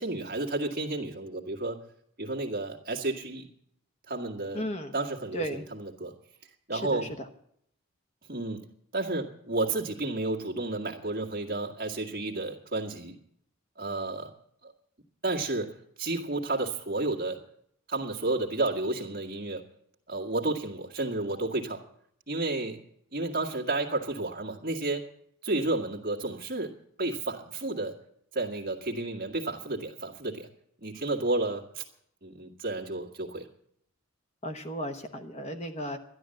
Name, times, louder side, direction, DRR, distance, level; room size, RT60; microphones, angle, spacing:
voice 1, 0.0-1.8 2.2-3.5 4.1-4.7 4.9-6.1 6.7-7.1 8.3-8.6 8.9-13.2 13.8-14.3 14.6-14.7 15.2-17.5 17.9-19.6 20.1-21.8 22.3-22.8 23.1-25.1 25.4-28.0 28.3-30.5 30.8-31.8 32.2-33.5, right 2 dB, 40° right, 0 dB, 1.9 m, -31 dB
voice 2, 4.5-4.9 5.3-5.6 6.7-7.1 34.4-36.0, equal, 30° left, 6 dB, 1.0 m, -35 dB
13.0 x 11.0 x 7.7 m, 0.70 s
head